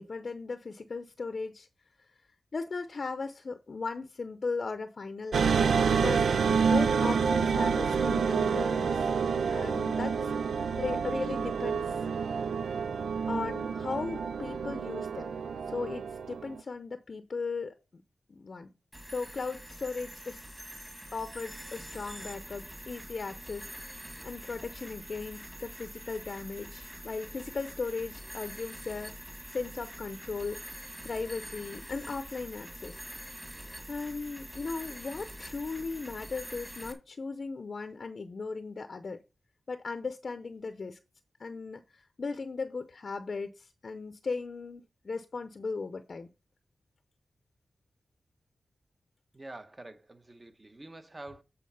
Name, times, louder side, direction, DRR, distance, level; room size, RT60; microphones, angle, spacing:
voice 1, 0.0-1.7 2.5-9.1 9.5-10.3 10.8-11.9 13.3-15.3 15.7-18.0 18.3-18.7 19.1-20.4 21.1-33.0 33.9-39.2 39.7-41.0 41.4-46.3, left 4 dB, 50° left, 0.7 m, -37 dB
sound 1, 5.3-16.6, right 6 dB, 90° right, 0.5 m, -28 dB
sound 2, 18.9-36.9, equal, 10° right, 1.6 m, -45 dB
voice 2, 49.3-51.4, right 2 dB, 30° right, 1.0 m, -47 dB
8.5 x 4.2 x 5.5 m
wide cardioid pair, 110°, 0 cm